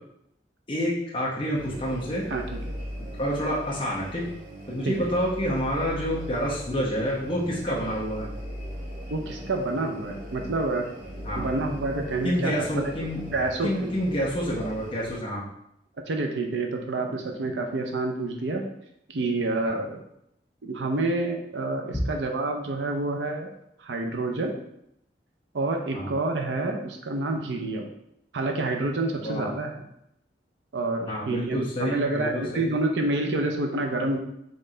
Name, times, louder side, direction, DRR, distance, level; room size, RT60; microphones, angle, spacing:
voice 1, 0.7-2.3 3.2-4.3 4.7-8.3 11.2-11.5 12.2-13.3 13.6-15.5 19.6-19.8 25.9-26.1 29.2-29.5 31.1-32.7, equal, 30° left, -6 dB, 0.8 m, -28 dB
sound 1, 1.5-15.2, equal, 50° right, 1.0 m, -39 dB
voice 2, 2.3-2.6 4.8-5.0 9.1-10.9 11.3-12.9 13.3-13.9 16.0-18.7 19.1-20.0 20.6-23.5 23.8-24.5 25.5-27.9 28.3-29.8 30.7-34.2, right 2 dB, 90° right, 3 dB, 0.6 m, -28 dB
4.2 x 3.2 x 3.8 m, 0.78 s
head